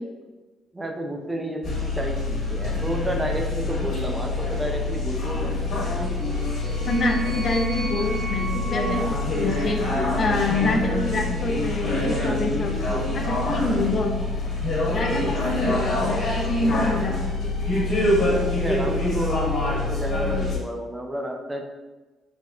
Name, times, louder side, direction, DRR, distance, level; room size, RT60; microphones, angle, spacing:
voice 1, 0.7-5.6 18.6-21.7, right 1 dB, 15° right, 2 dB, 0.5 m, -31 dB
sound 1, 1.6-20.6, left 2 dB, 70° left, 1.0 m, -25 dB
sound 2, 6.1-10.4, right 2 dB, 80° right, 0.6 m, -36 dB
voice 2, 6.8-9.8 10.2-12.7 13.1-14.2 14.9-17.2, left 2 dB, 50° left, 2 dB, 0.4 m, -26 dB
4.2 x 2.0 x 2.4 m, 1.2 s
supercardioid pair, 70°, 0 cm